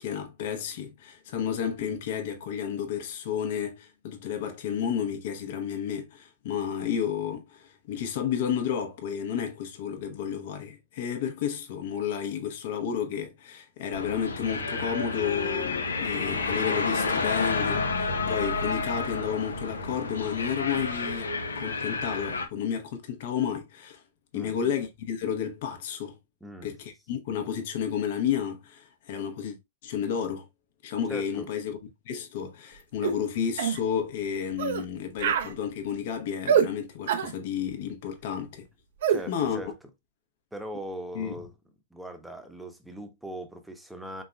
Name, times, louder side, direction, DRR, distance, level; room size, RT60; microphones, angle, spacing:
voice 1, 0.0-24.0 24.3-26.2 26.6-29.6 29.8-30.5 30.8-31.8 32.0-38.7 39.3-39.6 41.1-41.4, left 8 dB, 55° left, 1.0 m, -31 dB
sound 1, 13.9-22.5, left 3 dB, 80° left, 0.8 m, -30 dB
voice 2, 24.3-24.7 26.4-26.8 31.1-31.5 39.1-39.7 40.5-41.5 41.9-44.2, right 1 dB, 5° right, 0.9 m, -40 dB
sound 2, 33.0-33.2 33.6-33.8 34.6-34.8 35.2-35.5 36.5-36.7 37.1-37.3 39.0-39.2, right 8 dB, 60° right, 0.6 m, -24 dB
5.2 x 3.9 x 2.2 m
figure-of-eight pair, 110°, 0 cm